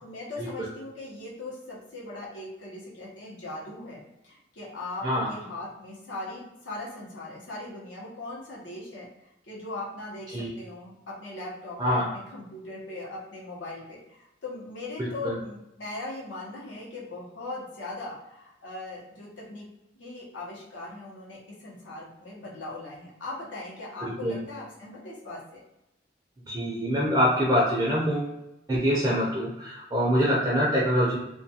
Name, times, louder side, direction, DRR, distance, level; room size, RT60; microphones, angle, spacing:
voice 1, 0.0-9.1 9.4-19.7 19.9-25.6, left 2 dB, 80° left, -5 dB, 0.9 m, -39 dB
voice 2, 15.0-15.4 24.0-24.4 26.5-28.3 28.7-31.2, equal, 20° right, -5 dB, 0.4 m, -25 dB
2.3 x 2.3 x 2.7 m, 0.89 s
head